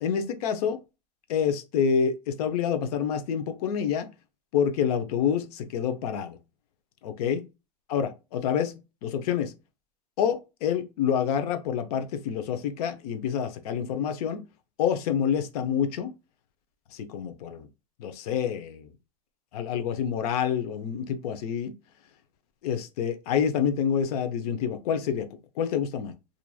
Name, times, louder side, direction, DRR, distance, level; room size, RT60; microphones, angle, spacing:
voice 1, 0.0-0.8 1.3-4.1 4.5-6.4 7.0-7.5 7.9-8.7 9.0-9.5 10.2-14.4 14.8-16.1 16.9-17.7 18.0-18.9 19.5-21.7 22.6-25.3 25.6-26.2, left 8 dB, 65° left, 0.7 m, -27 dB
2.9 x 2.5 x 2.3 m
supercardioid pair, 130°, 21 cm